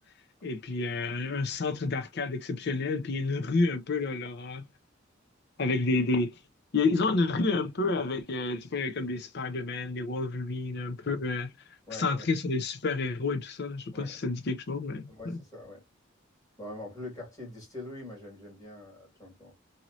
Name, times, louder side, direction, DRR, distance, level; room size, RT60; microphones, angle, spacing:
voice 1, 0.4-4.6 5.6-6.3 6.7-11.5 11.9-15.4, left 3 dB, 55° left, 0.6 m, -30 dB
voice 2, 11.9-12.3 13.9-14.3 15.1-15.8 16.6-19.5, left 1 dB, 15° left, 2.0 m, -43 dB
3.0 x 2.7 x 2.6 m
head